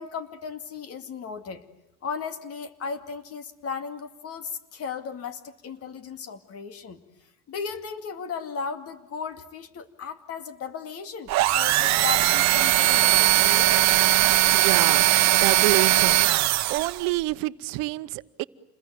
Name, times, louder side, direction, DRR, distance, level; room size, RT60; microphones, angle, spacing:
voice 1, 0.0-1.6 2.0-7.0 7.5-13.9, left 6 dB, 45° left, 10 dB, 2.3 m, -36 dB
sound 1, 11.3-17.1, right 17 dB, 55° right, 1.0 m, -20 dB
voice 2, 14.5-16.2 16.7-18.4, right 21 dB, 85° right, 15 dB, 0.9 m, -28 dB
28.5 x 21.5 x 9.2 m, 0.87 s
cardioid pair, 150°, 33 cm